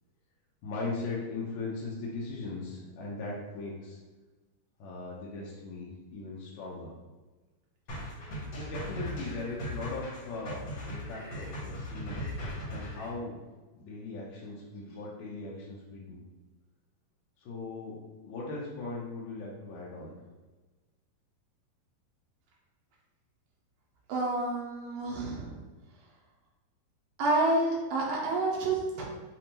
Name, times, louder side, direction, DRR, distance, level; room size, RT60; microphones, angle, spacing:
voice 1, 0.6-4.0 4.8-6.9 8.6-12.2 12.7-13.5 13.7-16.2 17.4-20.2, left 3 dB, 85° left, -5 dB, 1.5 m, -39 dB
sound 1, 7.9-13.1, equal, 60° left, 1.3 m, -38 dB
voice 2, 24.1-25.5 27.2-29.0, right 2 dB, 75° right, -3 dB, 2.5 m, -29 dB
7.0 x 2.6 x 2.9 m, 1.2 s
omnidirectional pair, 4.3 m